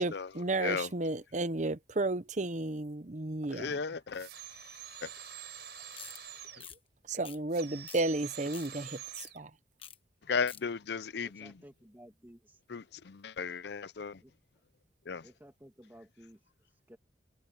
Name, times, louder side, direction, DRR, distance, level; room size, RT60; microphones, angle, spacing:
voice 1, 0.0-3.8 7.1-9.0 9.3-9.5, right 2 dB, 40° right, 0.9 m, -33 dB
voice 2, 0.6-0.9 3.5-4.3 5.0-5.1 10.3-11.5 12.7-14.2 15.1-15.3, left 5 dB, 60° left, 0.5 m, -35 dB
sound 1, 4.1-6.7 7.5-9.4, right 9 dB, 60° right, 6.1 m, -46 dB
sound 2, 5.9-6.2 6.6-6.8 7.2-7.6 7.9-8.0 8.3-8.7 9.2-9.3 9.8-10.0 10.2-10.6, left 9 dB, 30° left, 1.1 m, -47 dB
voice 3, 11.2-12.6 14.2-14.3 15.2-17.0, equal, 10° right, 2.5 m, -56 dB
head